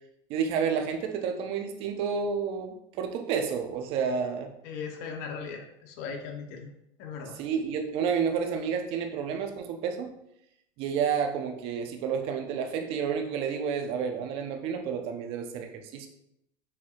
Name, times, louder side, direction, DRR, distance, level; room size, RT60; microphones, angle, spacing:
voice 1, 0.3-4.5 7.4-10.1 10.8-16.1, right 6 dB, 55° right, 5 dB, 0.7 m, -30 dB
voice 2, 4.6-6.7 7.0-7.4, left 5 dB, 70° left, 3 dB, 0.7 m, -38 dB
6.5 x 2.8 x 2.4 m, 0.79 s
supercardioid pair, 125°, 11 cm